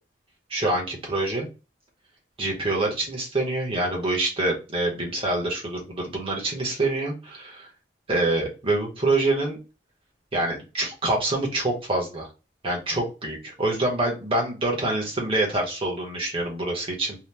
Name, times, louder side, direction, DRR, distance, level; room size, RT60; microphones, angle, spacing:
voice 1, 0.5-1.5 2.4-7.7 8.1-9.6 10.3-12.3 12.6-17.2, right 2 dB, 30° right, -1 dB, 1.0 m, -26 dB
2.8 x 2.2 x 3.3 m, 0.31 s
head